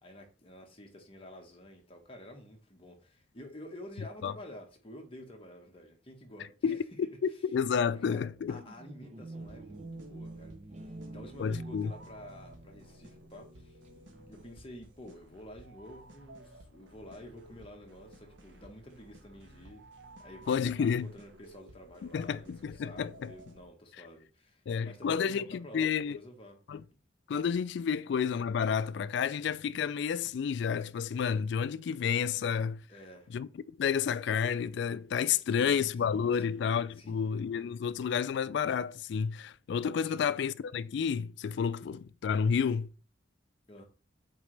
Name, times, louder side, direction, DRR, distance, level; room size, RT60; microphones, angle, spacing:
voice 1, 0.0-6.8 7.3-7.4 7.9-10.5 11.1-13.8 14.3-19.8 20.2-26.6 27.9-28.0 32.9-33.3 35.5-36.6 37.0-37.3 40.0-40.3 43.7-43.8, left 1 dB, 30° left, 1.4 m, -50 dB
voice 2, 6.6-8.6 11.4-11.9 20.5-21.1 22.0-23.3 24.7-26.2 26.7-26.8 27.3-32.8 33.3-33.5 33.8-42.9, left 7 dB, 60° left, 0.3 m, -30 dB
sound 1, 8.5-14.8, right 2 dB, 35° right, 0.6 m, -47 dB
sound 2, 9.4-23.7, right 1 dB, 75° right, 1.2 m, -55 dB
8.3 x 3.9 x 3.3 m
head